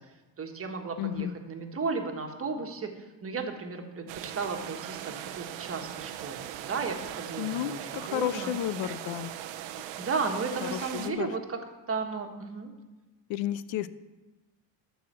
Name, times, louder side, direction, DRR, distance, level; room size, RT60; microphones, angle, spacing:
voice 1, 0.4-8.5 10.0-11.6 11.9-12.7, right 4 dB, 30° right, 4 dB, 1.4 m, -34 dB
voice 2, 1.0-1.3 7.4-9.3 9.8-9.9 10.6-11.3 13.3-13.9, left 12 dB, 75° left, 15 dB, 0.6 m, -32 dB
sound 1, 4.1-11.1, right 12 dB, 90° right, 0.8 m, -40 dB
12.0 x 4.3 x 7.4 m, 1.1 s
cardioid pair, 110°, 45 cm